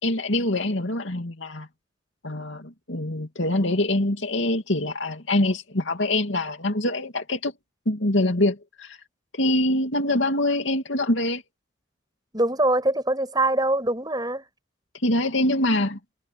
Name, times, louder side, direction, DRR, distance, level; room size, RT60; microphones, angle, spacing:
voice 1, 0.0-1.7 2.2-7.5 7.9-9.0 9.3-11.4 15.0-16.0, left 1 dB, 65° left, 2.7 m, -24 dB
voice 2, 12.3-14.4, right 2 dB, 20° right, 7.9 m, -23 dB
head